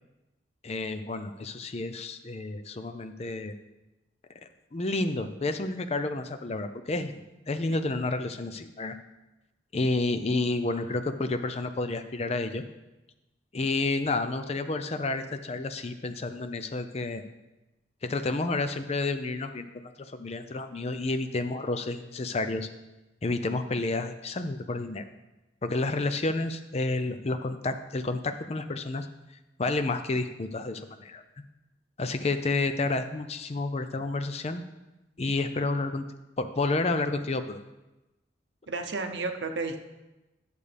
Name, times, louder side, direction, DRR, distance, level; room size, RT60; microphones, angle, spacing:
voice 1, 0.6-3.5 4.7-7.2 7.5-9.0 9.7-12.6 13.5-17.2 18.0-22.7 23.2-25.0 25.6-29.1 29.6-31.2 32.0-34.6 35.2-36.0 36.4-37.6, left 3 dB, 35° left, 9 dB, 0.5 m, -30 dB
voice 2, 38.7-39.8, right 3 dB, 75° right, 5 dB, 0.8 m, -32 dB
11.0 x 6.7 x 3.4 m, 1.0 s
head